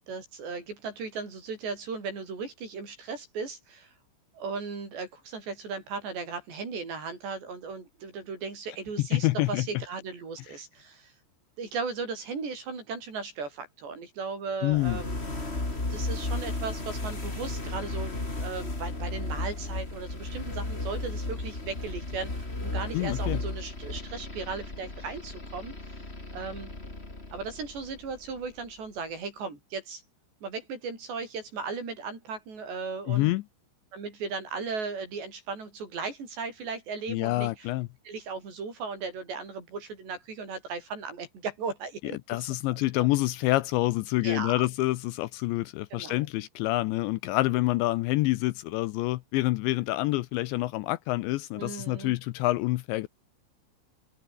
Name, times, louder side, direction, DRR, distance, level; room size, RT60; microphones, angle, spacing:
voice 1, 0.1-3.9 4.3-11.1 11.6-15.2 15.9-25.7 26.3-26.7 27.3-30.0 30.4-33.3 33.9-37.7 38.1-42.5 43.0-43.1 44.2-44.6 45.9-46.3 51.6-52.2, right 4 dB, 60° right, 9.2 m, -37 dB
voice 2, 9.1-9.7 14.6-15.0 22.9-23.4 33.1-33.4 37.1-37.9 42.0-53.1, left 19 dB, 85° left, 2.8 m, -27 dB
sound 1, 14.7-28.6, left 2 dB, 15° left, 3.4 m, -35 dB
omnidirectional pair, 5.6 m